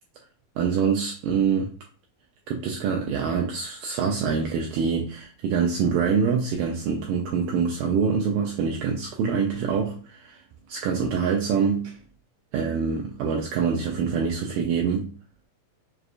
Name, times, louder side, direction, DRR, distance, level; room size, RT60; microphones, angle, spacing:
voice 1, 0.6-1.7 2.5-10.4 10.7-11.9 12.5-15.1, right 6 dB, 80° right, 0 dB, 1.9 m, -25 dB
6.4 x 2.3 x 2.4 m, 0.39 s
omnidirectional pair, 4.3 m